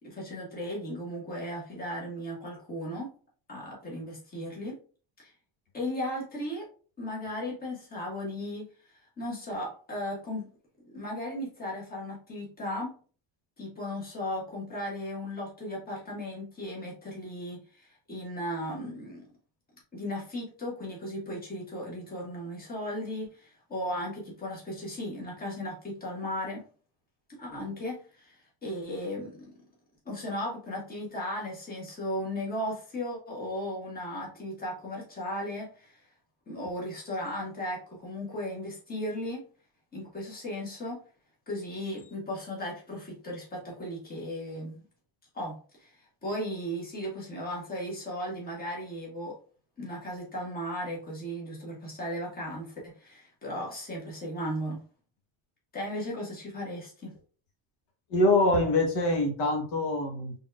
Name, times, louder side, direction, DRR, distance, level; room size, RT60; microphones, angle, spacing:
voice 1, 0.0-3.1 3.5-4.8 5.2-5.3 5.7-6.7 7.0-10.5 10.9-12.9 13.6-19.2 19.9-26.6 27.3-29.5 30.0-36.0 36.5-39.4 39.9-41.0 41.5-44.8 45.3-49.4 49.8-54.8 55.7-57.1, left 1 dB, 20° left, -3 dB, 1.4 m, -36 dB
voice 2, 58.1-60.3, left 2 dB, 75° left, 2 dB, 1.3 m, -24 dB
4.0 x 3.6 x 2.3 m, 0.41 s
cardioid pair, 150°, 46 cm